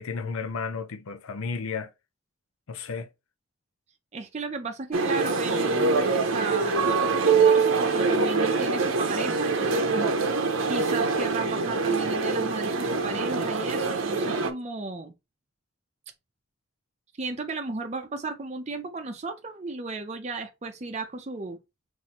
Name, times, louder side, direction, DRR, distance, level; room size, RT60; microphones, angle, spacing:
voice 1, 0.0-1.9 2.7-3.1, left 5 dB, 90° left, 0.6 m, -33 dB
voice 2, 4.1-10.4 10.7-15.1 17.2-21.6, right 3 dB, 35° right, 0.5 m, -35 dB
sound 1, 4.9-14.5, right 4 dB, 80° right, 0.7 m, -24 dB
5.7 x 2.7 x 2.9 m
head